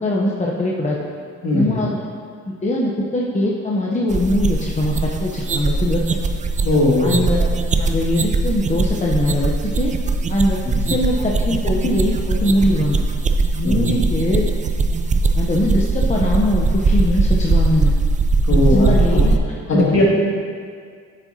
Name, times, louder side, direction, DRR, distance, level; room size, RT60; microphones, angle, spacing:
voice 1, 0.0-1.0 1.5-2.0 2.5-6.0 7.0-7.5 7.8-9.9 10.3-13.0 13.6-14.4 15.4-17.9 18.5-19.3 19.7-20.0, left 1 dB, 25° left, -3 dB, 0.8 m, -21 dB
voice 2, 1.4-1.8 6.6-7.2 10.6-10.9 13.6-14.0 18.4-19.2 19.7-20.0, left 2 dB, 50° left, -4 dB, 2.2 m, -19 dB
sound 1, 4.1-19.4, right 3 dB, 25° right, 0.4 m, -20 dB
9.6 x 7.4 x 2.8 m, 2.1 s
cardioid pair, 90°, 30 cm